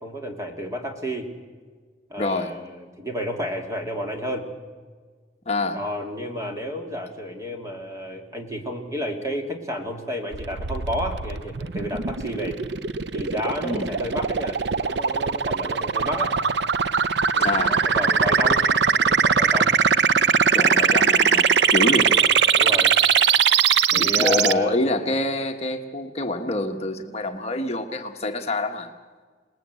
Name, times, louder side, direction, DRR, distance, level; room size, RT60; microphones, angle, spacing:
voice 1, 0.0-1.3 2.1-4.5 5.7-12.6 13.1-16.3 17.3-19.7 20.6-21.0 21.7-23.0 23.9-24.8, equal, 20° right, 2 dB, 2.7 m, -31 dB
voice 2, 2.2-2.5 5.4-5.8 13.6-13.9 17.4-17.8 20.5-22.2 23.9-28.9, left 2 dB, 35° left, 4 dB, 1.3 m, -26 dB
sound 1, 10.3-24.5, right 6 dB, 75° right, 0.7 m, -21 dB
27.0 x 20.0 x 8.3 m, 1.5 s
head